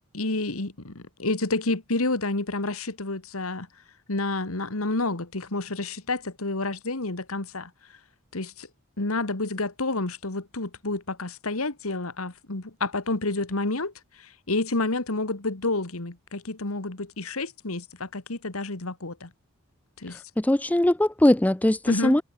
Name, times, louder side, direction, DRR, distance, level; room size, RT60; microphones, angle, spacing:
voice 1, 0.1-3.7 4.1-7.7 8.3-8.7 9.0-13.9 14.2-19.3 20.0-20.2 21.9-22.2, left 2 dB, 80° left, 2.1 m, -29 dB
voice 2, 20.4-22.2, left 1 dB, 5° left, 0.3 m, -21 dB
head